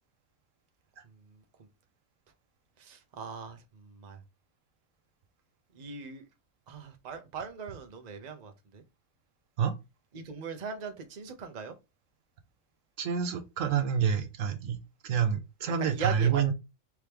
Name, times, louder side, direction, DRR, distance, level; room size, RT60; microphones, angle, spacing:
voice 1, 1.0-1.7 2.8-4.2 5.7-6.3 6.7-8.8 10.1-11.7 15.6-16.4, right 6 dB, 35° right, 0.8 m, -39 dB
voice 2, 13.0-16.5, right 7 dB, 75° right, 1.0 m, -28 dB
4.7 x 3.0 x 3.4 m
omnidirectional pair, 1.4 m